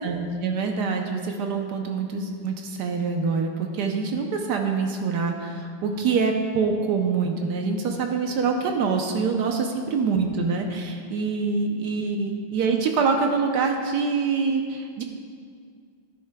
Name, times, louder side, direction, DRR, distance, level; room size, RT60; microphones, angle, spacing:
voice 1, 0.0-15.0, right 5 dB, 70° right, 3 dB, 1.0 m, -25 dB
11.5 x 10.5 x 2.2 m, 2.1 s
omnidirectional pair, 2.4 m